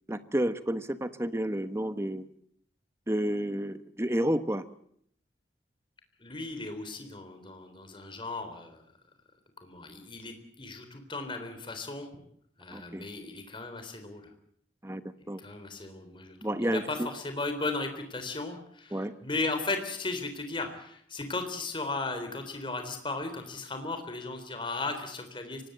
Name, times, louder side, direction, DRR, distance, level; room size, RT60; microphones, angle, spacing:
voice 1, 0.1-2.2 3.1-4.6 12.7-13.0 14.8-15.4 16.4-17.1 18.9-19.1, right 1 dB, 15° right, 11 dB, 1.1 m, -30 dB
voice 2, 6.2-8.8 9.6-12.1 12.6-14.3 15.2-16.4 16.6-25.7, left 3 dB, 30° left, 7 dB, 3.7 m, -36 dB
24.5 x 19.0 x 7.9 m, 0.67 s
head